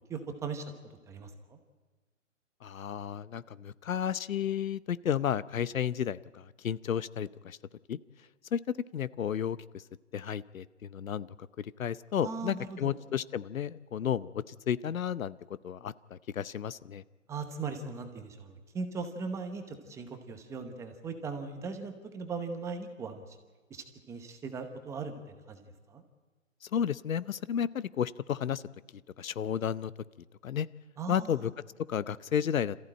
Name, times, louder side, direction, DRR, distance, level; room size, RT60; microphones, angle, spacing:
voice 1, 0.1-0.7 1.1-1.6 12.2-12.9 17.3-23.2 23.7-25.1 25.5-25.6 25.9-26.0 31.0-31.5, right 4 dB, 5° right, 6 dB, 0.9 m, -39 dB
voice 2, 2.6-7.6 7.9-8.0 8.5-8.6 8.9-9.8 10.1-15.4 15.6-17.0 26.6-28.6 29.2-29.9 30.4-30.7 31.1-31.5 31.9-32.8, left 9 dB, 80° left, 18 dB, 0.8 m, -32 dB
26.5 x 14.5 x 8.9 m, 1.3 s
hypercardioid pair, 150°, 40 cm